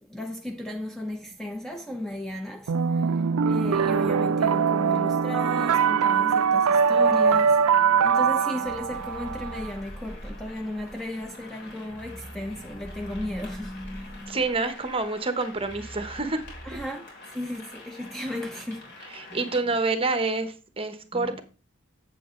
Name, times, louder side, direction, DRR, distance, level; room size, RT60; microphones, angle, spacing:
voice 1, 0.0-14.4 16.6-19.5 21.1-21.4, left 1 dB, ahead, 0.6 m, -35 dB
sound 1, 2.7-9.7, right 6 dB, 75° right, 0.4 m, -22 dB
sound 2, 8.6-16.9, right 1 dB, 25° left, 1.9 m, -44 dB
sound 3, 8.9-19.6, left 2 dB, 50° left, 3.8 m, -47 dB
voice 2, 14.3-16.4 19.3-21.4, right 3 dB, 25° right, 0.9 m, -27 dB
7.9 x 7.6 x 3.7 m
head